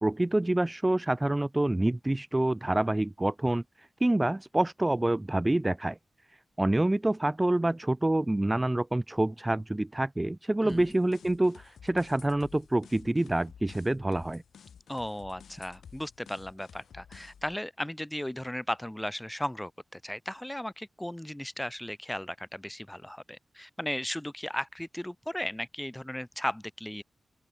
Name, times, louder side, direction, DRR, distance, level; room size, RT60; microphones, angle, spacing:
voice 1, 0.0-6.0 6.6-14.4, right 1 dB, 15° right, 0.5 m, -27 dB
sound 1, 10.7-17.5, left 7 dB, 90° left, 6.3 m, -52 dB
voice 2, 14.9-27.0, left 1 dB, 5° left, 6.3 m, -36 dB
open air
wide cardioid pair, 150°, 0 cm